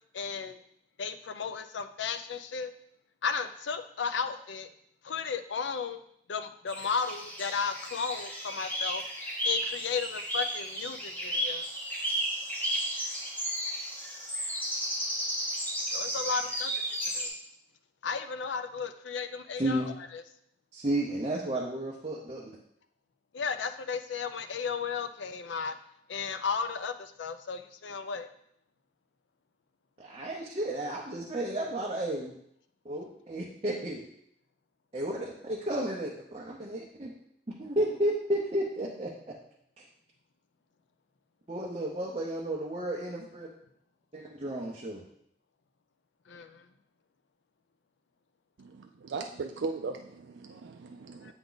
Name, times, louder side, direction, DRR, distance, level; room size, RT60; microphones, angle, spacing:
voice 1, 0.1-0.6 1.0-2.7 3.2-4.7 5.0-6.0 6.3-9.0 9.4-11.7 15.9-16.7 17.1-17.3 18.0-19.8 23.3-25.8 26.1-28.3 46.3-46.6 51.2-51.3, left 5 dB, 80° left, 10 dB, 0.5 m, -34 dB
sound 1, 6.7-17.3, equal, 10° left, 1.1 m, -33 dB
voice 2, 19.6-19.9 20.7-22.5 30.0-32.4 32.8-34.0 34.9-37.1 37.6-39.3 39.8-39.9 41.5-43.5 44.1-45.0, right 1 dB, 30° right, -3 dB, 0.7 m, -32 dB
voice 3, 48.6-51.3, right 4 dB, 80° right, 4 dB, 0.4 m, -38 dB
8.2 x 3.6 x 3.9 m, 0.71 s
head